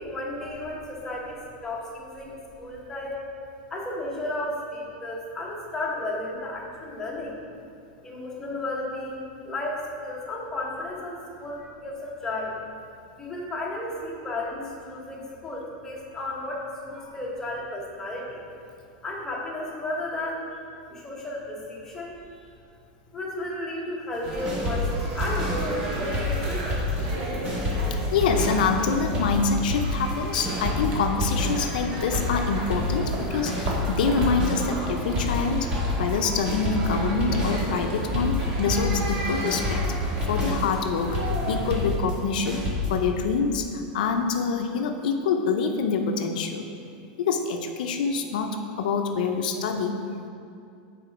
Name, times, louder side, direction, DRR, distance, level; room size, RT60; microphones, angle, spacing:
voice 1, 0.0-3.2 3.7-7.4 8.0-12.6 13.2-18.4 19.0-20.6 20.9-22.2 23.1-26.8, left 1 dB, 10° left, -3 dB, 0.9 m, -33 dB
sound 1, 24.2-42.0, right 1 dB, 40° right, 1.3 m, -33 dB
sound 2, 24.5-27.2 27.5-43.1, left 1 dB, 20° right, 1.2 m, -28 dB
voice 2, 28.1-39.8 40.3-42.6 42.9-46.7 47.2-50.0, left 5 dB, 85° left, 4 dB, 0.5 m, -26 dB
6.5 x 4.3 x 5.0 m, 2.5 s
supercardioid pair, 165°, 5 cm